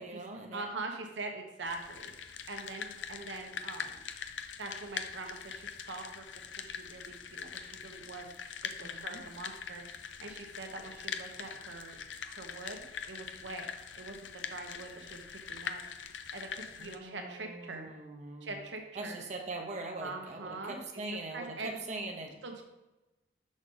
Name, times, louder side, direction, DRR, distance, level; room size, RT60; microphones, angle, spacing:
voice 1, 0.0-0.7 8.8-9.2 16.8-18.6 19.0-22.4, right 2 dB, 40° right, 2 dB, 0.7 m, -42 dB
voice 2, 0.5-4.0 4.6-12.0 12.2-13.7 14.0-15.8 16.3-17.9 18.4-19.2 20.0-21.0 21.3-21.7 22.4-22.6, right 3 dB, 80° right, 3 dB, 1.0 m, -43 dB
sound 1, 1.6-17.0, left 7 dB, 85° left, 0.5 m, -43 dB
6.3 x 5.3 x 3.8 m, 1.0 s
head